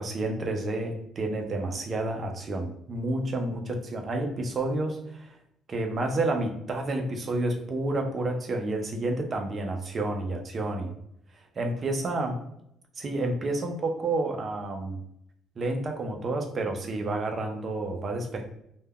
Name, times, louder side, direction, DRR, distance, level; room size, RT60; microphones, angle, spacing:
voice 1, 0.0-5.3 5.7-10.9 11.6-12.4 13.0-15.0 15.6-18.4, right 2 dB, 25° right, 3 dB, 0.4 m, -30 dB
2.2 x 2.1 x 3.4 m, 0.76 s
cardioid pair, 180°, 0 cm